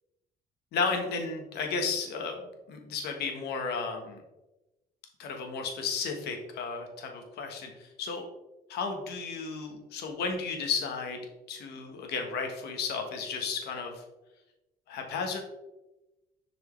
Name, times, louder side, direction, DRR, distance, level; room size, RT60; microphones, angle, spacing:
voice 1, 0.7-2.4 2.7-4.2 5.2-8.2 8.7-11.2 11.5-14.0 14.9-15.4, left 5 dB, 75° left, 3 dB, 1.3 m, -33 dB
6.7 x 4.7 x 3.2 m, 1.0 s
cardioid pair, 110°, 17 cm